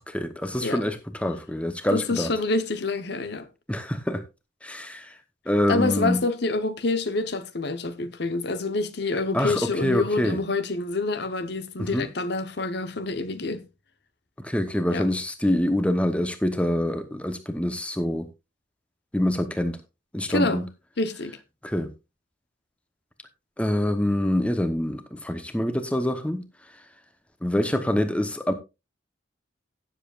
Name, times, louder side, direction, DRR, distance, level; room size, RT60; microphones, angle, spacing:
voice 1, 0.0-2.3 3.7-4.2 4.6-5.2 5.5-6.2 9.3-10.4 11.8-12.1 14.4-18.3 19.1-19.8 20.1-20.7 21.6-21.9 23.6-26.5 27.4-28.5, left 1 dB, 5° left, 1.0 m, -25 dB
voice 2, 1.9-3.5 5.7-13.6 14.9-15.1 20.3-20.6 21.0-21.4, left 3 dB, 55° left, 1.0 m, -27 dB
17.0 x 7.4 x 2.4 m
head